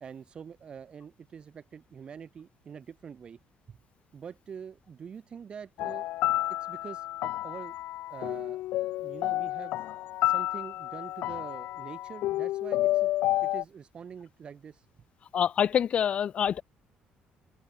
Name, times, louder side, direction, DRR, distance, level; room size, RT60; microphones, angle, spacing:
voice 1, 0.0-3.4 3.7-3.8 4.1-6.1 6.5-7.8 8.1-8.6 9.0-9.8 10.2-13.1 13.4-14.9, right 7 dB, 30° right, 1.4 m, -45 dB
sound 1, 5.8-13.6, left 15 dB, 70° left, 0.4 m, -30 dB
voice 2, 15.3-16.6, left 8 dB, 40° left, 0.7 m, -26 dB
cardioid pair, 170°, 3 cm